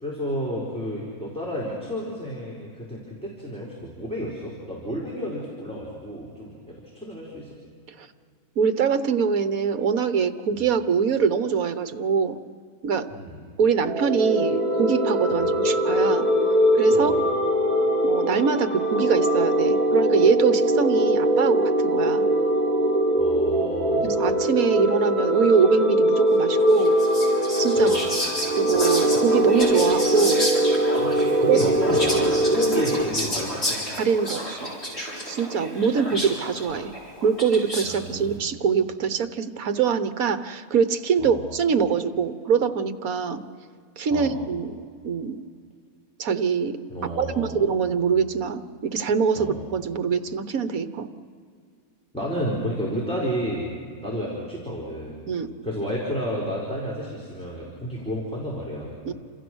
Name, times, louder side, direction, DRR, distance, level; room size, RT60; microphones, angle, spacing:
voice 1, 0.0-7.5 10.5-10.6 13.1-13.4 15.3-15.5 16.9-17.1 23.1-24.1 27.8-28.0 31.4-33.8 37.8-38.4 41.2-41.4 44.1-44.3 46.9-47.6 49.4-49.6 52.1-53.7 54.0-55.2 55.6-58.9, equal, 5° left, -5 dB, 4.6 m, -31 dB
voice 2, 8.6-12.4 12.8-13.1 13.6-16.3 16.7-17.1 18.0-22.2 24.0-26.9 27.6-28.0 28.6-30.4 31.5-31.6 33.9-34.7 35.3-36.9 37.2-43.4 44.0-44.7 45.0-45.4 46.2-46.8 47.2-51.1 55.3-55.5 59.0-59.1, right 6 dB, 65° right, 10 dB, 1.5 m, -23 dB
sound 1, 13.7-33.0, equal, 25° right, 3.9 m, -22 dB
Whispering, 26.7-38.0, equal, 50° left, 6.3 m, -31 dB
29.5 x 27.0 x 6.3 m, 2.2 s
omnidirectional pair, 1.7 m